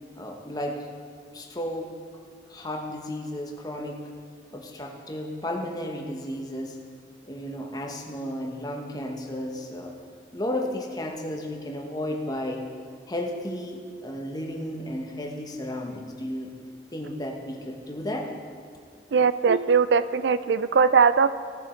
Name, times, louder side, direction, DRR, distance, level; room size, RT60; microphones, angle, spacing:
voice 1, 0.1-0.9 1.3-1.9 2.5-4.1 4.5-6.8 7.2-9.9 10.3-12.6 13.1-16.5 16.9-18.3, left 1 dB, 20° left, 1 dB, 1.2 m, -33 dB
voice 2, 19.1-21.3, right 5 dB, 70° right, 13 dB, 0.4 m, -20 dB
17.0 x 7.3 x 4.5 m, 2.1 s
head